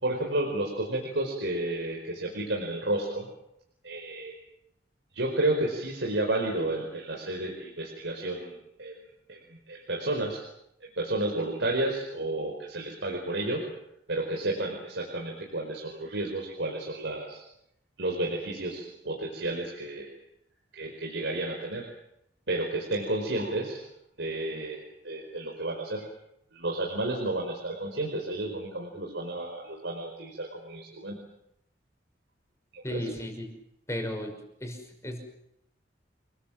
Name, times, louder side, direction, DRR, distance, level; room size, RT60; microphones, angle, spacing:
voice 1, 0.0-3.3 3.8-4.4 5.1-9.0 9.3-10.4 10.8-13.6 14.1-17.4 18.0-20.2 20.7-21.9 22.5-23.8 24.2-26.1 26.5-31.2 32.7-33.0, right 2 dB, 70° right, 0 dB, 5.0 m, -31 dB
voice 2, 32.8-33.5 33.9-34.3 34.6-35.2, left 1 dB, 15° left, 5 dB, 5.7 m, -34 dB
29.0 x 21.0 x 7.6 m, 0.78 s
head